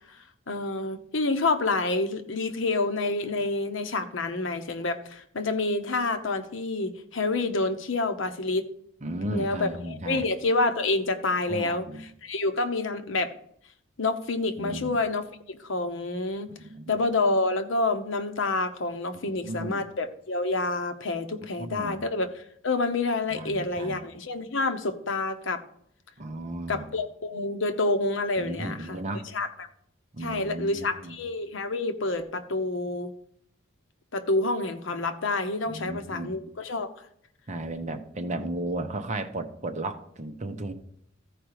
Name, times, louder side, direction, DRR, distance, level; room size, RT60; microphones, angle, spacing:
voice 1, 0.5-8.7 9.3-11.9 12.2-13.3 14.0-16.5 16.9-25.6 26.7-29.0 29.3-29.7 30.2-33.1 34.1-36.9, left 2 dB, 70° left, 8 dB, 0.9 m, -28 dB
voice 2, 9.0-10.3 11.5-12.0 14.6-15.0 16.5-16.9 19.4-19.8 21.6-22.0 23.3-24.0 26.2-26.9 28.4-29.4 30.1-31.2 35.7-36.4 37.5-40.7, right 1 dB, 35° right, 7 dB, 0.9 m, -34 dB
14.5 x 4.9 x 4.8 m, 0.70 s
head